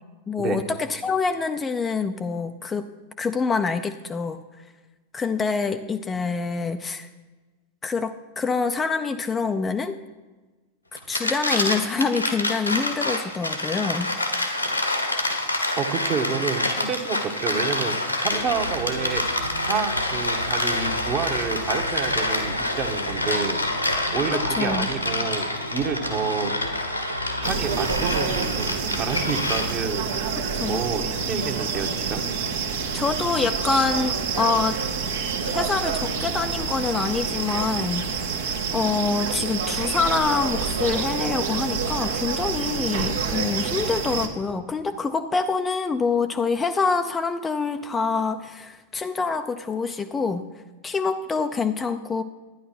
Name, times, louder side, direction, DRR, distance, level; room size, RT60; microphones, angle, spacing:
voice 1, 0.3-2.9 3.2-4.4 5.1-7.1 7.8-10.0 10.9-14.1 24.3-24.9 30.3-30.8 32.9-34.8 35.5-38.4 38.7-50.5 50.8-52.2, left 4 dB, 15° left, 7 dB, 0.5 m, -26 dB
sound 1, 11.0-30.0, left 2 dB, 90° left, 1.6 m, -27 dB
voice 2, 15.8-19.2 19.6-23.6 24.1-26.5 27.4-28.7 28.9-30.2 30.7-32.2, right 5 dB, 30° right, 5 dB, 1.3 m, -29 dB
sound 2, 18.2-28.5, right 1 dB, 85° right, 0.8 m, -35 dB
sound 3, 27.4-44.3, right 5 dB, 60° right, 1.2 m, -27 dB
12.0 x 10.0 x 6.0 m, 1.3 s
figure-of-eight pair, 90°, 0 cm